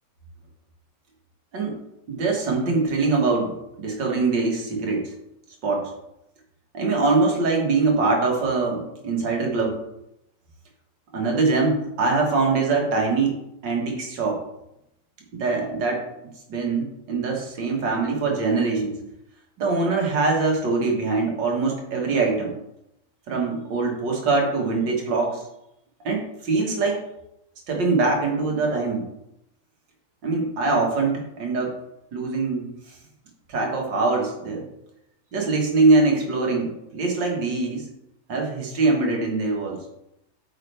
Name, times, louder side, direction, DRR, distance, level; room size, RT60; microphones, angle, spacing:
voice 1, 2.1-5.1 5.6-5.9 6.7-9.8 11.1-13.4 13.6-14.4 15.4-16.1 16.5-19.0 19.6-22.5 23.3-25.4 26.0-27.0 27.7-29.0 30.2-31.7 32.1-33.0 33.5-34.6 35.3-37.9 38.3-39.8, right 3 dB, 85° right, 0 dB, 2.3 m, -23 dB
8.6 x 5.7 x 3.4 m, 0.84 s
omnidirectional pair, 1.9 m